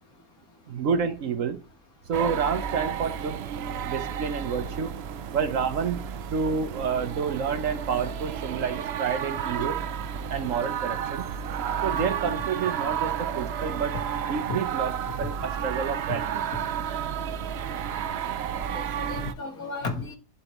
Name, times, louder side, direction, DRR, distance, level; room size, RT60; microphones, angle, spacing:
voice 1, 0.7-1.6 2.1-3.4 3.8-5.0 5.3-6.0 6.3-9.8 10.3-11.3 11.8-13.9 14.3-16.4, right 6 dB, 60° right, 1.1 m, -29 dB
sound 1, 2.1-19.3, right 8 dB, 80° right, 0.5 m, -32 dB
voice 2, 18.5-20.2, left 3 dB, 70° left, 2.0 m, -35 dB
11.5 x 4.4 x 3.0 m
omnidirectional pair, 1.6 m